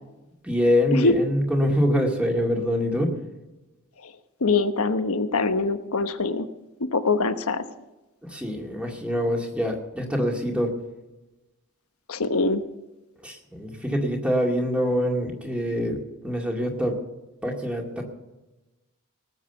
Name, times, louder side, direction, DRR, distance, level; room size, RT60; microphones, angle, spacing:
voice 1, 0.4-3.1 8.2-10.7 13.2-17.0 17.4-18.0, equal, 5° right, 1 dB, 2.1 m, -25 dB
voice 2, 4.4-6.5 6.8-7.6 12.1-12.6, left 3 dB, 85° left, 9 dB, 1.1 m, -23 dB
18.5 x 7.4 x 6.9 m, 1.0 s
head